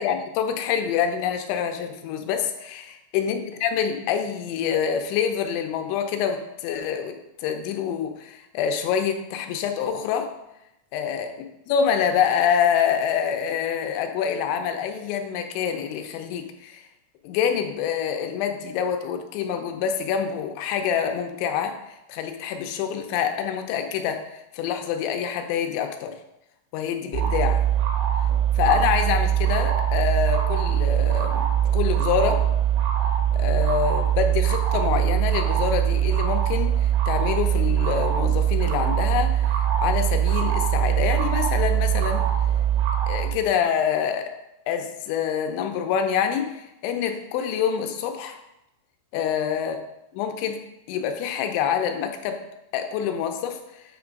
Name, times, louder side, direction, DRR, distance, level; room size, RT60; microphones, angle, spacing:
voice 1, 0.0-10.3 10.9-11.3 11.7-16.9 17.2-26.1 26.7-27.6 28.5-32.5 33.3-42.2 43.1-44.3 44.7-48.4 49.1-49.8 50.1-50.6 50.9-52.4 52.7-53.8, left 8 dB, 80° left, 6 dB, 2.9 m, -26 dB
sound 1, 27.1-43.4, right 10 dB, 75° right, 3.4 m, -22 dB
8.9 x 3.5 x 5.1 m, 0.88 s
omnidirectional pair, 5.5 m